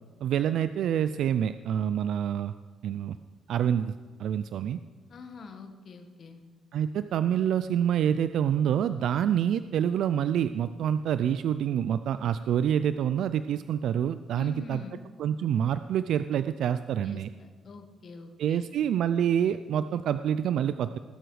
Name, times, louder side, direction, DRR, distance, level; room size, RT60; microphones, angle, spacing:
voice 1, 0.2-2.5 2.8-3.2 3.5-4.8 6.7-14.8 15.2-17.3 18.4-21.0, right 9 dB, 75° right, 12 dB, 0.4 m, -27 dB
voice 2, 5.1-6.4 14.3-15.0 17.0-18.7, left 4 dB, 55° left, 5 dB, 1.5 m, -44 dB
19.5 x 7.8 x 4.9 m, 1.4 s
cardioid pair, 90°, 0 cm